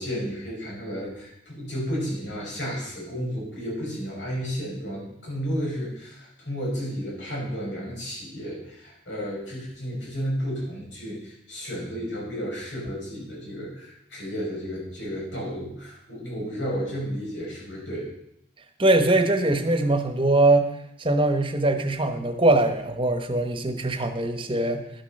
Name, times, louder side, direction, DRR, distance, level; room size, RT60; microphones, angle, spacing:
voice 1, 0.0-18.1, equal, 85° left, -4 dB, 6.0 m, -32 dB
voice 2, 18.8-20.7 21.0-24.8, right 2 dB, 30° right, 7 dB, 1.1 m, -22 dB
11.5 x 7.4 x 6.5 m, 0.78 s
head